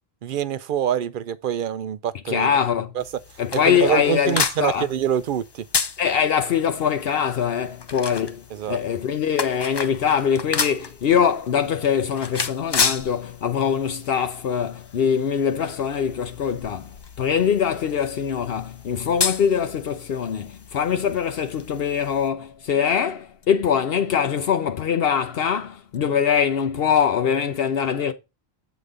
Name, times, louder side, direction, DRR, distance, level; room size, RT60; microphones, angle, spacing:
voice 1, 0.2-2.5 3.0-3.1 3.5-5.6 8.5-8.8, right 9 dB, 60° right, 0.6 m, -25 dB
voice 2, 2.3-2.9 3.4-4.9 6.0-28.1, left 7 dB, 70° left, 0.9 m, -23 dB
sound 1, 3.0-22.3, left 5 dB, 35° left, 0.4 m, -32 dB
8.2 x 3.9 x 4.9 m
omnidirectional pair, 1.1 m